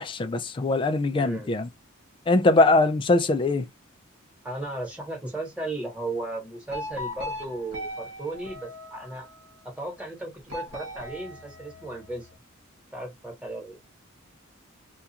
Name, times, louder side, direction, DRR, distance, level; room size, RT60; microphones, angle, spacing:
voice 1, 0.0-1.7 2.3-3.7, left 2 dB, 25° left, 0.3 m, -22 dB
voice 2, 1.1-1.5 4.4-9.3 9.8-12.3 12.9-13.8, right 2 dB, 5° right, 1.1 m, -35 dB
sound 1, 6.7-9.4 10.5-12.2, left 1 dB, 90° right, 1.2 m, -38 dB
2.4 x 2.3 x 2.7 m
head